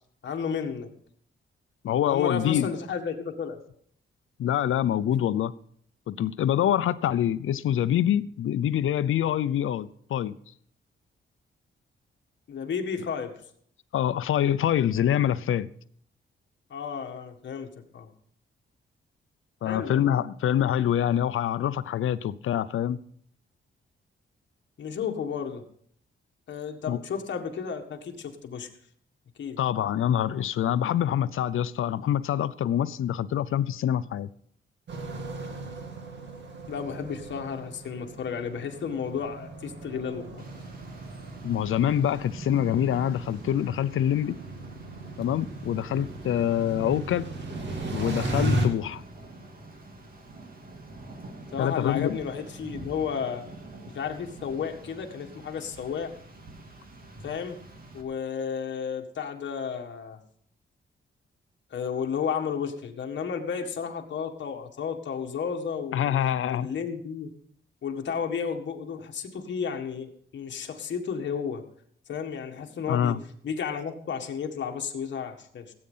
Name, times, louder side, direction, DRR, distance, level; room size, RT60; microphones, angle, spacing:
voice 1, 0.2-0.9 2.1-3.6 12.5-13.3 16.7-18.1 19.6-20.2 24.8-25.6 26.5-28.7 29.4-29.6 36.7-40.4 51.5-53.5 53.9-56.1 57.2-57.6 57.9-60.2 61.7-66.1 66.5-67.3 67.8-71.6 72.1-73.2 73.4-75.7, left 6 dB, 60° left, 1.8 m, -32 dB
voice 2, 1.8-2.7 4.4-5.5 6.1-10.3 13.9-15.7 19.6-23.0 26.9-27.0 29.6-34.3 41.4-44.4 45.2-47.3 47.9-49.0 51.6-52.2 65.9-66.7 72.9-73.2, left 10 dB, 85° left, 0.6 m, -25 dB
sound 1, 34.9-48.7, right 2 dB, 60° right, 2.4 m, -36 dB
Rain, 40.4-58.0, right 2 dB, 45° right, 2.2 m, -45 dB
17.0 x 8.8 x 5.6 m
wide cardioid pair, 175°, 21 cm